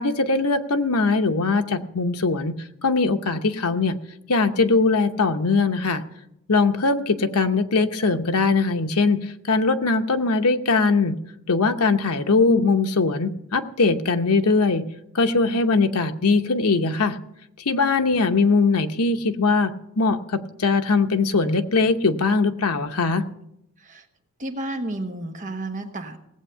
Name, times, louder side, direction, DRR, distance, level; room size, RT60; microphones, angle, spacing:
voice 1, 0.0-2.6 2.8-4.0 4.3-6.0 6.5-11.2 11.5-14.8 15.1-17.2 17.6-23.2, left 3 dB, 85° left, 6 dB, 0.9 m, -21 dB
voice 2, 24.4-26.2, right 1 dB, 35° right, 6 dB, 1.1 m, -31 dB
17.5 x 8.0 x 5.6 m, 0.79 s
head